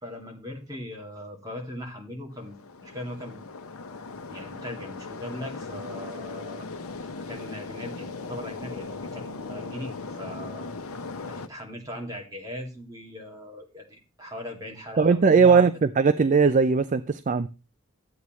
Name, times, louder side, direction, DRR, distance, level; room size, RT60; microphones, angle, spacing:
voice 1, 0.0-3.4 4.2-6.7 7.0-10.7 11.3-15.6, left 1 dB, 15° right, 0 dB, 2.4 m, -39 dB
sound 1, 2.3-11.5, left 3 dB, 90° left, 0.8 m, -38 dB
voice 2, 15.0-17.5, right 5 dB, 35° right, 12 dB, 0.4 m, -19 dB
12.5 x 8.3 x 3.1 m, 0.31 s
head